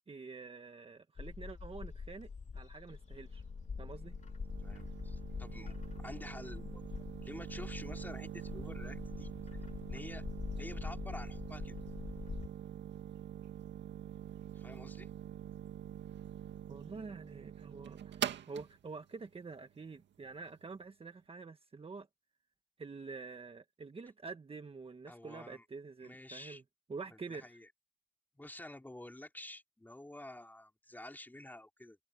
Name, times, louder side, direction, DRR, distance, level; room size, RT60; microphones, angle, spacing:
voice 1, 0.1-3.4 3.8-4.2 16.7-22.1 22.8-26.6 26.9-27.4, right 4 dB, 30° right, 1.5 m, -47 dB
Bird, 1.2-12.5, left 5 dB, 35° left, 3.0 m, -44 dB
sound 1, 3.1-20.7, right 9 dB, 65° right, 2.0 m, -45 dB
voice 2, 4.6-6.9 7.2-9.3 9.9-10.2 10.6-11.8 14.5-15.1 25.1-25.6 26.0-26.6 27.1-27.7 28.4-32.0, left 1 dB, 10° left, 3.8 m, -49 dB
cardioid pair, 90°, 20 cm